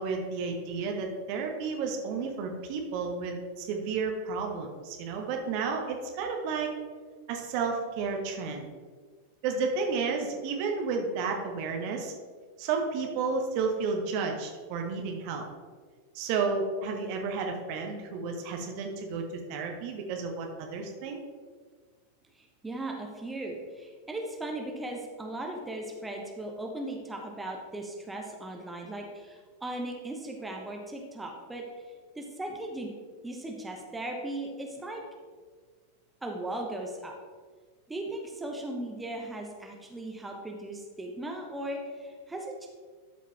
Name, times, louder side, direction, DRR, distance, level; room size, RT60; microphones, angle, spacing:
voice 1, 0.0-6.7 7.3-8.7 9.4-12.1 12.6-15.5 16.1-19.2 19.5-21.2, right 4 dB, 45° right, 2 dB, 1.2 m, -32 dB
voice 2, 22.3-32.9 33.2-35.0 36.2-37.1 37.9-42.7, right 1 dB, 10° right, 1 dB, 1.0 m, -38 dB
12.0 x 5.0 x 3.4 m, 1.6 s
figure-of-eight pair, 90°, 0 cm